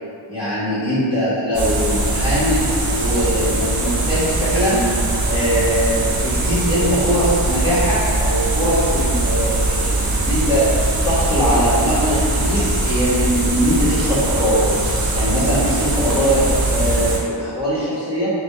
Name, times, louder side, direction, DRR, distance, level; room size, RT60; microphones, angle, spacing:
voice 1, 0.3-4.9 5.3-10.7 11.0-14.7 15.1-18.3, equal, 10° right, -15 dB, 1.4 m, -21 dB
sound 1, 1.5-17.2, right 2 dB, 50° right, 0.6 m, -21 dB
4.1 x 2.3 x 3.1 m, 2.4 s
wide cardioid pair, 40°, 47 cm